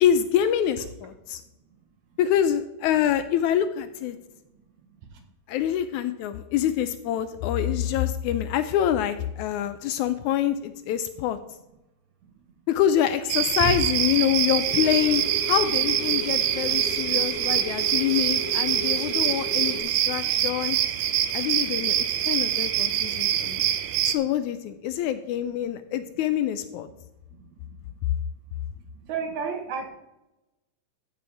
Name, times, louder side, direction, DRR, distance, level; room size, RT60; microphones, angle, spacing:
voice 1, 0.0-1.4 2.2-4.2 5.5-11.4 12.7-20.8 21.3-23.6 24.1-26.9, left 10 dB, 80° left, 11 dB, 1.9 m, -26 dB
sound 1, 13.3-24.2, right 11 dB, 90° right, 2.2 m, -25 dB
sound 2, 14.6-19.8, left 1 dB, 20° left, 1.4 m, -37 dB
voice 2, 19.9-20.4 21.1-21.2 22.9-23.1 23.7-23.8 27.4-27.8 28.9-29.9, right 6 dB, 65° right, 5 dB, 2.5 m, -34 dB
14.5 x 6.9 x 3.5 m, 0.93 s
omnidirectional pair, 3.7 m